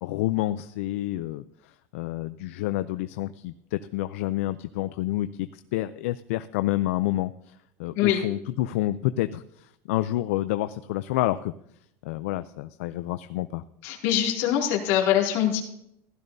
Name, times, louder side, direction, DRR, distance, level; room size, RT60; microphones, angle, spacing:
voice 1, 0.0-11.5 12.0-13.6, left 15 dB, 75° left, 12 dB, 0.4 m, -29 dB
voice 2, 13.8-15.6, left 11 dB, 55° left, 0 dB, 2.4 m, -23 dB
15.5 x 12.5 x 2.7 m, 0.75 s
cardioid pair, 180°, 8 cm